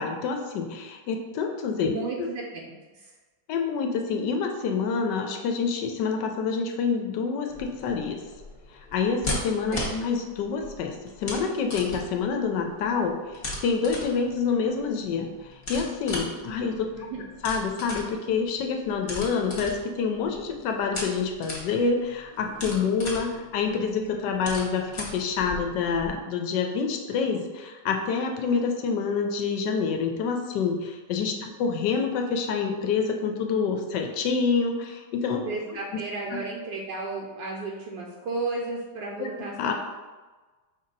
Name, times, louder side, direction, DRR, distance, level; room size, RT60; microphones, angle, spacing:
voice 1, 0.0-1.9 2.2-2.3 3.5-8.2 8.9-13.2 13.6-16.9 17.4-35.4 35.9-36.0 39.2-39.3 39.6-39.7, left 5 dB, 75° left, 4 dB, 1.1 m, -27 dB
voice 2, 1.8-2.7 9.7-9.9 16.9-17.2 35.5-39.7, right 3 dB, 75° right, -2 dB, 1.2 m, -33 dB
sound 1, 7.5-26.1, left 2 dB, 35° left, 1.1 m, -38 dB
5.0 x 2.7 x 3.9 m, 1.3 s
omnidirectional pair, 2.1 m